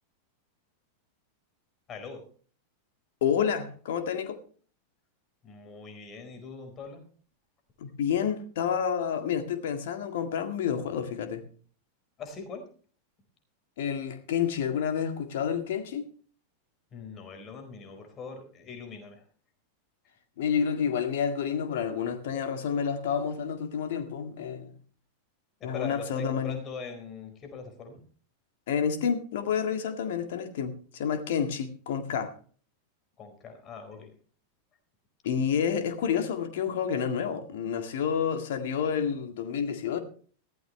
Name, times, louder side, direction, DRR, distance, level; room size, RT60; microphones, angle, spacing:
voice 1, 1.9-2.2 5.4-7.0 12.2-12.6 16.9-19.2 25.6-28.0 33.2-34.1, left 5 dB, 30° left, 4.5 m, -42 dB
voice 2, 3.2-4.4 7.8-11.4 13.8-16.1 20.4-24.7 25.6-26.6 28.7-32.3 35.2-40.0, left 7 dB, 55° left, 1.9 m, -29 dB
16.5 x 14.0 x 3.2 m
figure-of-eight pair, 90°, 0 cm